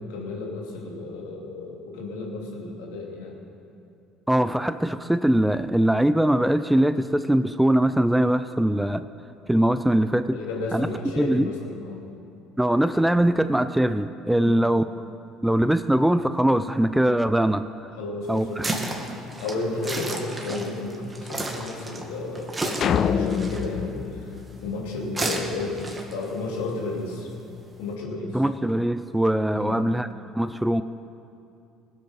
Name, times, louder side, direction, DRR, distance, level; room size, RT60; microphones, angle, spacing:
voice 1, 0.1-3.4 10.3-12.1 14.3-14.6 18.0-18.6 19.4-24.4 24.6-27.3 27.8-28.4 29.5-29.8, left 2 dB, 75° left, -2 dB, 2.9 m, -32 dB
voice 2, 4.3-9.0 9.5-10.4 10.7-10.9 11.2-11.5 12.6-14.8 15.4-17.7 18.3-18.6 28.3-30.1 30.3-30.8, right 1 dB, 5° right, 12 dB, 0.5 m, -21 dB
sound 1, 18.2-27.9, right 2 dB, 20° right, 2.1 m, -34 dB
sound 2, 22.8-25.3, left 7 dB, 50° left, 0.5 m, -26 dB
20.0 x 8.3 x 5.7 m, 2.6 s
hypercardioid pair, 65°, 0 cm